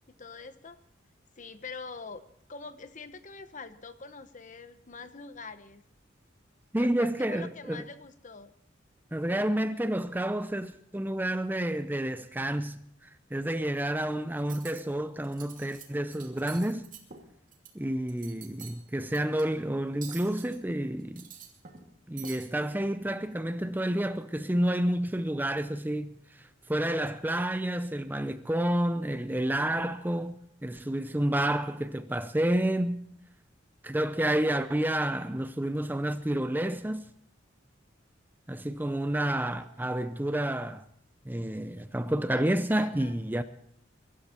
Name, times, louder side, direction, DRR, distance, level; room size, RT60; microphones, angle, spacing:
voice 1, 0.1-0.8 1.4-2.2 2.5-5.8 6.7-8.5 39.2-40.2 42.3-42.4 42.7-43.2, left 4 dB, 40° left, 1.0 m, -45 dB
voice 2, 6.7-7.8 9.1-16.9 17.7-21.2 22.1-30.4 30.6-33.0 33.8-37.1 38.5-40.8 41.2-43.4, right 1 dB, 10° right, 0.6 m, -29 dB
Cutlery silverware, 14.4-14.8 15.2-15.8 16.1-17.7 18.1-18.8 19.1-19.4 20.0-20.6 21.0-21.9 22.2-22.5, right 7 dB, 45° right, 2.8 m, -46 dB
23.5 x 12.5 x 4.4 m
head